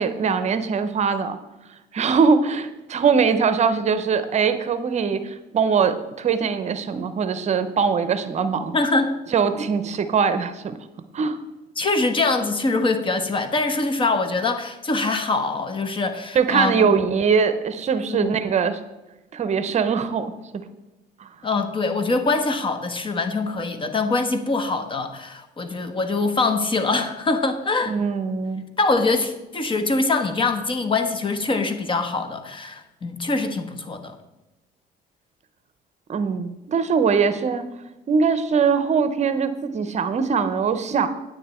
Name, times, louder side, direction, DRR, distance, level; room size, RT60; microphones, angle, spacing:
voice 1, 0.0-1.4 1.9-8.8 9.3-10.8 11.1-11.4 16.3-18.8 19.3-20.3 21.2-21.3 27.9-28.6 36.1-37.6 38.1-41.1, right 6 dB, 45° right, 11 dB, 0.8 m, -22 dB
voice 2, 8.7-9.1 11.8-16.9 18.1-18.4 21.4-27.9 28.8-34.2, left 3 dB, 30° left, 8 dB, 1.2 m, -23 dB
9.4 x 9.1 x 4.3 m, 1.0 s
cardioid pair, 110°, 17 cm